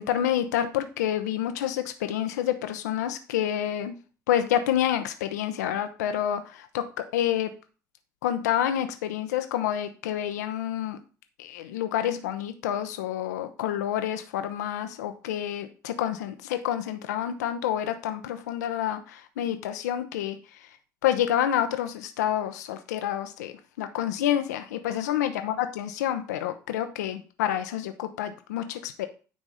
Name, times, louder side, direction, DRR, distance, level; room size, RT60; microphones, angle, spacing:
voice 1, 0.0-3.9 4.3-6.8 7.1-7.5 8.2-11.0 11.4-20.4 21.0-23.5 23.8-29.1, left 11 dB, 85° left, 8 dB, 0.7 m, -28 dB
9.3 x 3.6 x 5.5 m, 0.36 s
hypercardioid pair, 65°, 9 cm